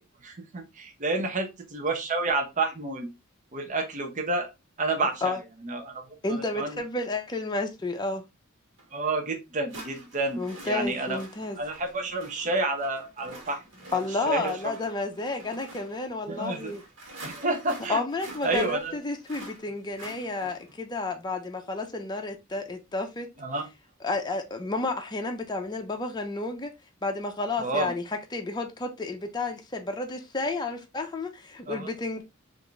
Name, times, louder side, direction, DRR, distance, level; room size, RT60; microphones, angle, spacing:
voice 1, 0.2-3.1 3.5-4.5 4.8-5.4 5.6-6.8 8.9-11.2 11.6-13.6 13.9-14.0 14.3-14.7 16.3-16.7 17.2-18.0 18.4-19.0 23.4-23.7 27.6-27.9 31.7-31.9, right 2 dB, 35° right, 0.6 m, -30 dB
voice 2, 6.2-8.3 10.4-11.6 13.9-16.8 17.9-23.3 24.0-26.7 27.0-32.2, left 3 dB, 20° left, 0.6 m, -31 dB
sound 1, 8.8-8.9 9.7-20.8, right 2 dB, 65° right, 1.4 m, -47 dB
3.5 x 2.5 x 3.1 m
head